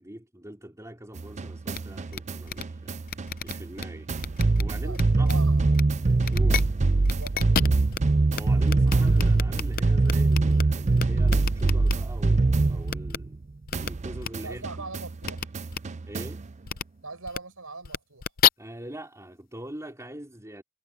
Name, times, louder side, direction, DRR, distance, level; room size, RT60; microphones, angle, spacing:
voice 1, 0.0-4.1 4.6-5.4 6.3-6.7 8.3-13.5 13.7-14.9 16.1-16.4 18.6-20.6, right 1 dB, 15° right, 3.8 m, -43 dB
sound 1, 1.2-13.4 13.7-16.5, right 3 dB, 30° right, 0.5 m, -24 dB
sound 2, 1.7-1.8 2.1-2.2 2.5-2.6 3.1-3.8 4.2-4.6 4.9-5.3 5.7-5.8 6.2-6.6 7.0-8.0 8.3-8.4 8.7-10.6 11.0-11.9 12.9-13.2 13.7-13.9 14.2-14.3 15.2-15.4 15.7-15.8 16.7-16.8 17.3-17.4 17.8-18.5, left 8 dB, 40° left, 0.6 m, -28 dB
voice 2, 4.8-5.8 7.1-7.8 14.4-15.5 17.0-18.3, right 3 dB, 70° right, 5.9 m, -41 dB
head